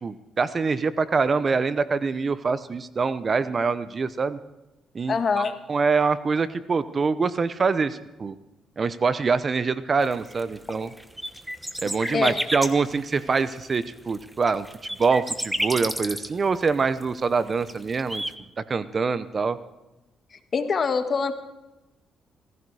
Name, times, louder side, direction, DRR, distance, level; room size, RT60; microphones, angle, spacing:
voice 1, 0.0-4.4 4.9-8.4 8.8-10.9 11.8-14.7 15.0-18.2 18.7-19.6, right 4 dB, 40° right, 14 dB, 0.8 m, -24 dB
voice 2, 5.1-5.5 12.1-12.4 20.5-21.3, left 5 dB, 45° left, 8 dB, 1.7 m, -24 dB
sound 1, 10.0-18.3, equal, 5° right, 1.1 m, -31 dB
18.0 x 15.5 x 4.8 m, 1.0 s
cardioid pair, 90°, 0 cm